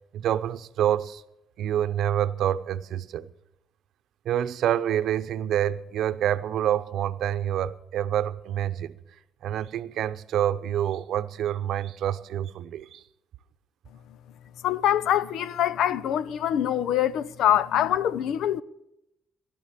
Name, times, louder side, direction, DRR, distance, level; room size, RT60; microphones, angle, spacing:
voice 1, 0.1-1.2 1.6-3.3 4.2-9.0 9.4-13.0, right 11 dB, 75° right, 0.7 m, -27 dB
voice 2, 14.6-18.6, left 10 dB, 80° left, 0.6 m, -24 dB
17.0 x 12.0 x 6.8 m
cardioid pair, 90°, 0 cm